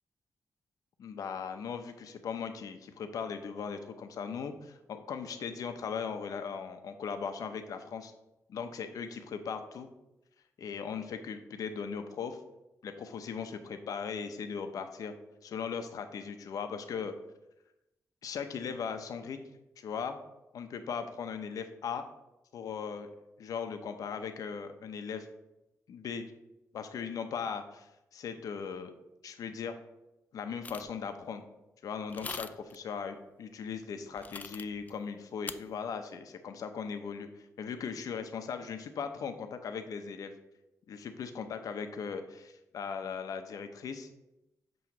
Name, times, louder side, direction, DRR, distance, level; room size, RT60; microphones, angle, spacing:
voice 1, 1.0-8.1 8.5-9.9 10.6-12.4 12.8-15.1 15.4-17.1 18.2-19.4 19.8-20.2 20.5-22.0 22.5-23.1 23.4-25.3 25.9-26.3 26.7-28.9 29.2-29.8 30.3-31.4 31.8-40.3 40.9-44.1, left 6 dB, 80° left, 7 dB, 0.7 m, -38 dB
sound 1, 30.6-31.0 32.1-32.8 34.2-34.9 35.5-35.6, left 4 dB, 25° left, 0.3 m, -41 dB
7.6 x 3.1 x 5.8 m, 0.94 s
wide cardioid pair, 110°, 6 cm